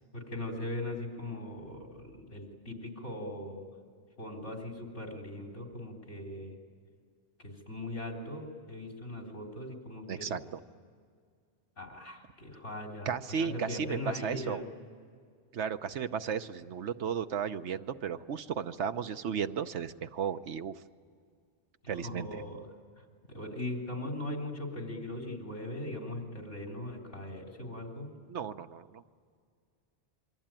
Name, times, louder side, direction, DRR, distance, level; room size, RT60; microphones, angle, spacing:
voice 1, 0.1-3.6 4.2-6.5 7.4-10.4 11.8-14.6 21.8-22.6 23.3-28.1, left 1 dB, 80° left, 1 dB, 4.0 m, -39 dB
voice 2, 10.1-10.6 13.1-14.6 15.5-20.7 21.9-22.4 28.3-29.0, right 7 dB, 80° right, 10 dB, 1.2 m, -34 dB
27.0 x 23.5 x 9.0 m, 2.1 s
omnidirectional pair, 1.2 m